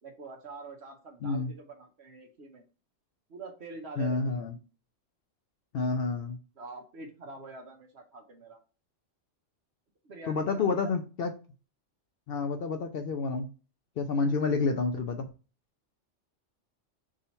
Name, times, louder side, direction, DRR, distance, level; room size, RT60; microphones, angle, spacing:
voice 1, 0.0-2.6 3.3-4.5 6.6-8.6 10.0-11.0, right 3 dB, 60° right, 4 dB, 1.1 m, -45 dB
voice 2, 1.2-1.5 4.0-4.5 5.7-6.4 10.3-11.3 12.3-13.5 14.0-15.3, left 4 dB, 60° left, 5 dB, 0.6 m, -29 dB
3.7 x 2.8 x 4.2 m, 0.34 s
omnidirectional pair, 1.3 m